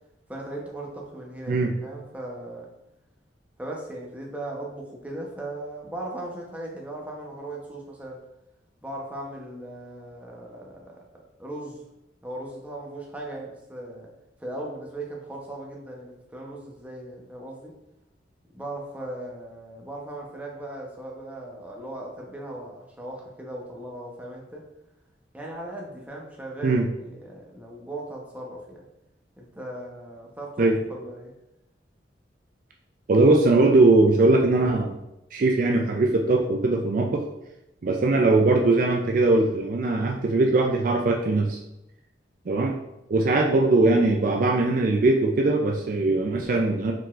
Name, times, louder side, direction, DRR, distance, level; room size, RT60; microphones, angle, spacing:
voice 1, 0.3-2.7 3.6-8.2 8.8-11.0 11.4-11.8 12.2-14.1 14.4-17.7 18.5-24.6 25.3-28.8 29.4-31.3, right 1 dB, 10° right, -2 dB, 0.7 m, -38 dB
voice 2, 33.1-34.9 35.3-37.3 37.8-41.6 42.5-42.7 43.1-46.9, right 2 dB, 45° right, 2 dB, 0.4 m, -20 dB
4.5 x 3.9 x 2.4 m, 0.89 s
head